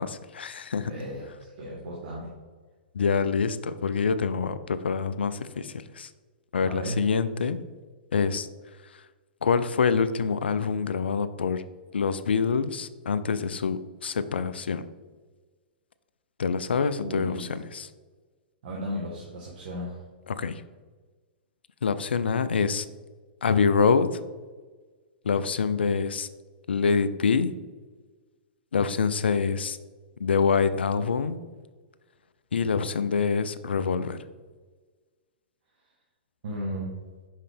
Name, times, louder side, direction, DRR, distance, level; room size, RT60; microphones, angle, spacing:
voice 1, 0.0-0.9 2.9-6.1 6.5-7.6 8.1-8.5 9.4-11.6 11.9-14.9 16.4-17.9 20.3-20.6 21.8-22.9 23.4-24.1 25.2-26.3 26.7-27.5 28.7-29.8 30.2-31.4 32.5-34.2, left 5 dB, 80° left, 13 dB, 0.4 m, -25 dB
voice 2, 0.8-2.3 6.6-7.1 17.0-17.5 18.6-20.0 36.4-36.9, equal, 60° right, -3 dB, 1.4 m, -35 dB
5.6 x 5.3 x 3.4 m, 1.4 s
hypercardioid pair, 120°, 6 cm